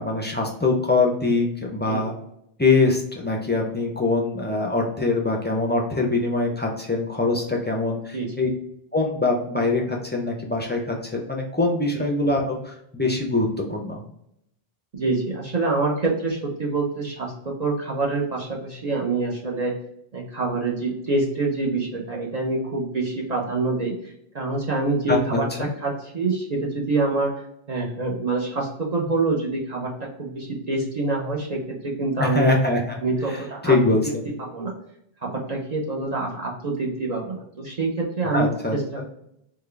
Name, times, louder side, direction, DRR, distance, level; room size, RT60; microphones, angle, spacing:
voice 1, 0.0-2.1 2.6-8.5 8.9-14.0 25.1-25.7 32.2-33.0 33.3-34.3 38.3-39.0, left 3 dB, 15° left, 0 dB, 0.3 m, -23 dB
voice 2, 14.9-19.7 20.1-27.3 27.7-32.6 33.0-33.7 34.4-34.7 35.2-39.1, right 3 dB, 45° right, -2 dB, 0.6 m, -26 dB
3.6 x 2.2 x 3.2 m, 0.76 s
omnidirectional pair, 1.0 m